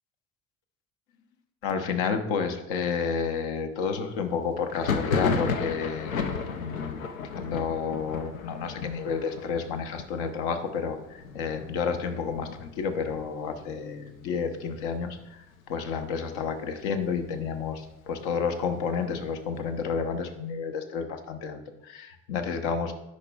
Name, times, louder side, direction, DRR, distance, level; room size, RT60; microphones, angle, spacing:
voice 1, 1.6-7.1 7.4-22.9, left 6 dB, 65° left, 7 dB, 0.9 m, -31 dB
Thunder, 4.7-14.2 14.5-15.2 15.4-16.4 16.8-18.5, left 5 dB, 85° left, 0.6 m, -34 dB
10.5 x 5.2 x 2.3 m, 0.90 s
figure-of-eight pair, 60°, 40 cm